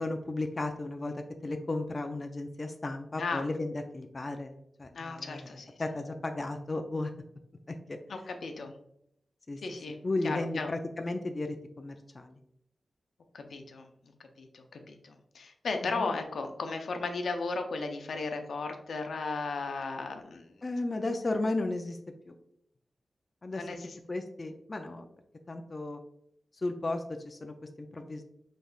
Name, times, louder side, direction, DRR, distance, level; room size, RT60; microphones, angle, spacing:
voice 1, 0.0-5.5 5.8-7.1 7.9-8.0 9.5-9.6 10.0-12.4 16.0-16.1 20.6-22.0 22.3-22.4 23.4-23.6 24.1-25.1 25.5-26.0 26.6-28.2, left 2 dB, 30° left, 5 dB, 0.3 m, -34 dB
voice 2, 4.9-5.7 8.1-8.7 9.6-10.0 10.2-10.7 13.3-20.6 23.5-24.0, left 3 dB, 85° left, 5 dB, 0.6 m, -36 dB
5.2 x 3.2 x 2.3 m, 0.73 s
wide cardioid pair, 140°, 0 cm